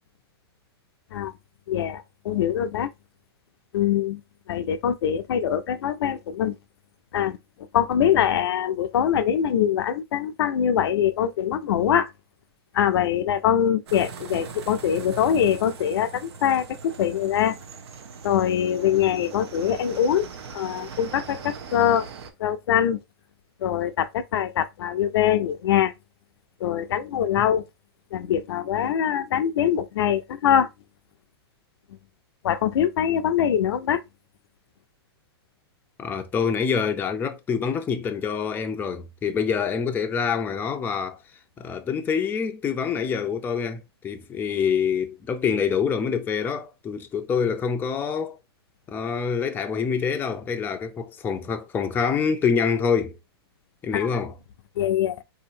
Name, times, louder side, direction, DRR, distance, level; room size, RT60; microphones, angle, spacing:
voice 1, 1.7-2.9 3.7-4.2 4.5-6.5 7.1-7.4 7.7-12.1 12.7-17.6 18.2-20.3 20.5-22.1 22.4-23.0 23.6-25.9 26.6-27.6 28.1-30.7 32.4-34.0 53.9-54.1 54.8-55.2, left 9 dB, 70° left, 0.5 m, -23 dB
sound 1, 13.9-22.3, right 6 dB, 75° right, 0.7 m, -41 dB
voice 2, 36.0-41.2 41.6-48.4 48.9-53.2 53.8-54.3, left 6 dB, 15° left, 0.4 m, -26 dB
4.1 x 2.8 x 2.6 m
hypercardioid pair, 130°, 13 cm